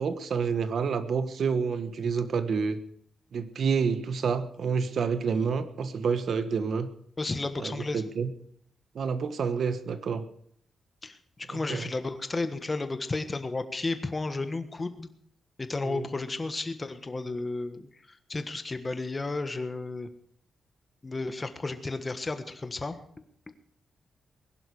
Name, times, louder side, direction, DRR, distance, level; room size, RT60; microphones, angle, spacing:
voice 1, 0.0-2.8 3.3-6.9 7.6-8.3 8.9-10.2 11.5-11.9 15.8-16.1, right 5 dB, 55° right, 11 dB, 1.4 m, -28 dB
voice 2, 7.2-8.0 11.0-15.1 15.6-17.8 18.1-20.1 21.0-23.0, left 3 dB, 20° left, 9 dB, 1.4 m, -33 dB
21.0 x 11.0 x 4.9 m, 0.64 s
wide cardioid pair, 155°, 0 cm